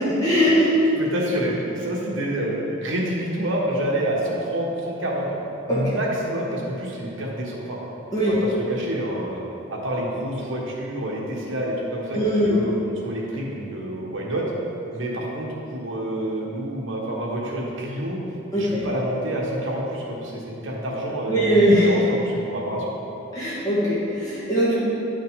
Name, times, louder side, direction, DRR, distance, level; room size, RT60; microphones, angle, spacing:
voice 1, 0.2-0.6 5.7-5.9 8.1-8.3 12.1-12.5 18.5-18.9 21.3-21.9 23.3-24.7, equal, 20° left, -9 dB, 1.5 m, -20 dB
voice 2, 0.9-5.3 5.7-7.8 8.2-9.4 9.7-14.4 14.9-18.2 18.5-23.0, right 1 dB, 65° right, -3 dB, 1.3 m, -28 dB
9.8 x 5.6 x 3.7 m, 2.9 s
head